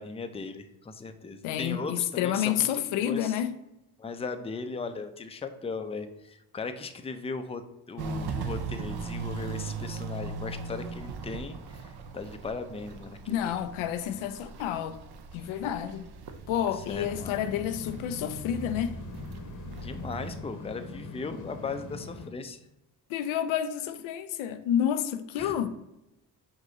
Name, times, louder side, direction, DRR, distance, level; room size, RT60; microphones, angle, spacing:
voice 1, 0.0-3.4 4.0-7.6 7.9-13.6 16.7-17.3 19.8-22.6 25.4-25.5, left 4 dB, 15° left, 0.5 m, -38 dB
voice 2, 1.4-3.5 13.3-15.0 15.3-16.1 16.5-19.0 23.1-25.7, left 10 dB, 85° left, 0.5 m, -29 dB
Walk footsteps, 8.0-20.4, right 4 dB, 55° right, 0.7 m, -39 dB
sound 1, 16.9-22.3, left 3 dB, 40° left, 0.9 m, -42 dB
5.0 x 2.6 x 3.9 m
supercardioid pair, 60°, 47 cm